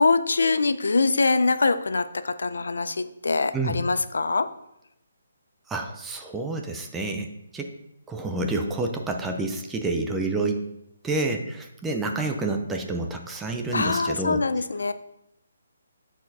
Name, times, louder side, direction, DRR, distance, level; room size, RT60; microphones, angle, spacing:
voice 1, 0.0-4.5 13.7-14.9, left 3 dB, 80° left, 11 dB, 0.6 m, -23 dB
voice 2, 3.5-3.8 5.7-7.7 8.1-10.7 11.0-14.4, right 2 dB, 5° right, 3 dB, 0.4 m, -28 dB
8.4 x 4.3 x 4.8 m, 0.82 s
hypercardioid pair, 175°, 0 cm